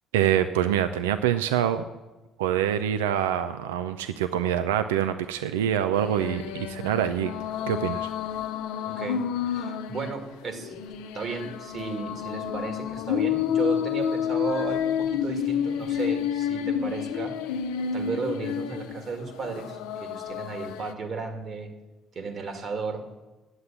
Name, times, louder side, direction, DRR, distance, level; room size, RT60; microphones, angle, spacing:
voice 1, 0.1-1.8 2.4-7.3 7.7-8.1, right 10 dB, 85° right, 10 dB, 0.4 m, -25 dB
sound 1, 5.9-20.9, left 8 dB, 75° left, 0.6 m, -30 dB
voice 2, 8.8-10.8 11.1-17.4 17.9-21.7 22.1-23.1, right 4 dB, 50° right, 6 dB, 2.1 m, -34 dB
9.6 x 8.0 x 8.6 m, 1.1 s
hypercardioid pair, 55°, 0 cm